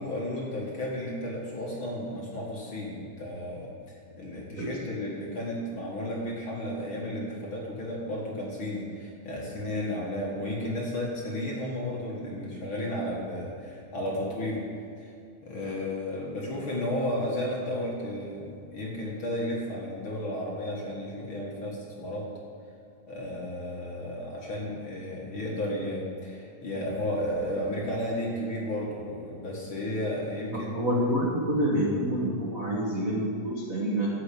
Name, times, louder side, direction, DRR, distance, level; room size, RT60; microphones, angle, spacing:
voice 1, 0.0-14.7 15.0-15.1 15.4-22.2 23.1-30.9, left 1 dB, 45° left, -4 dB, 2.0 m, -33 dB
voice 2, 30.7-34.1, equal, 60° right, -5 dB, 0.8 m, -27 dB
11.5 x 7.8 x 8.5 m, 2.5 s
omnidirectional pair, 4.3 m